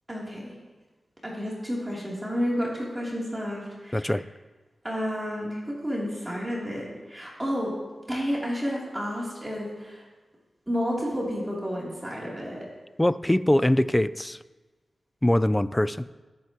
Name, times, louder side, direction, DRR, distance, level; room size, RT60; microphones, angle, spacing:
voice 1, 0.1-0.5 1.2-4.2 4.8-7.7 8.1-10.0 10.7-12.6, equal, 15° right, -5 dB, 3.1 m, -31 dB
voice 2, 3.9-4.2 13.0-14.4 15.2-16.0, left 1 dB, 15° left, 16 dB, 0.4 m, -22 dB
18.5 x 9.4 x 3.0 m, 1.3 s
cardioid pair, 65°, 0 cm